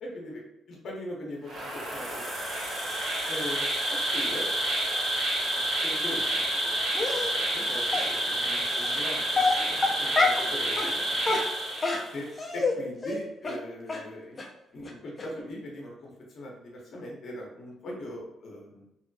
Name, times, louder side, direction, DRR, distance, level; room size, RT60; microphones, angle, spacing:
voice 1, 0.0-0.4 0.7-2.2 3.3-3.7 4.1-4.5 5.5-11.3 12.1-12.3 12.5-14.4 14.7-18.8, left 1 dB, 55° left, -2 dB, 0.8 m, -40 dB
Insect, 1.4-12.2, right 1 dB, 85° right, 1.0 m, -29 dB
Dog, 7.0-7.3 7.9-8.0 8.8-9.0 9.3-10.5 10.8-10.9 11.2-12.7 13.0-13.2 13.4-13.6 13.9-14.0 14.4-14.5 14.9-15.0 15.2-15.3, left 3 dB, 30° left, 0.5 m, -27 dB
2.7 x 2.1 x 2.6 m, 0.90 s
cardioid pair, 90°, 0 cm